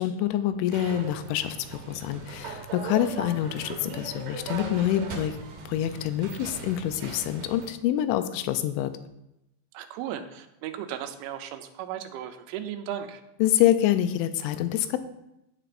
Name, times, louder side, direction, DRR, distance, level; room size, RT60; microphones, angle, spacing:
voice 1, 0.0-5.4 5.7-8.9 13.4-15.0, left 12 dB, 90° left, 11 dB, 3.0 m, -26 dB
sound 1, 0.7-7.7, right 5 dB, 65° right, 2.2 m, -39 dB
voice 2, 9.7-13.2, right 10 dB, 85° right, 7 dB, 3.1 m, -36 dB
15.5 x 5.9 x 2.5 m, 0.87 s
omnidirectional pair, 5.3 m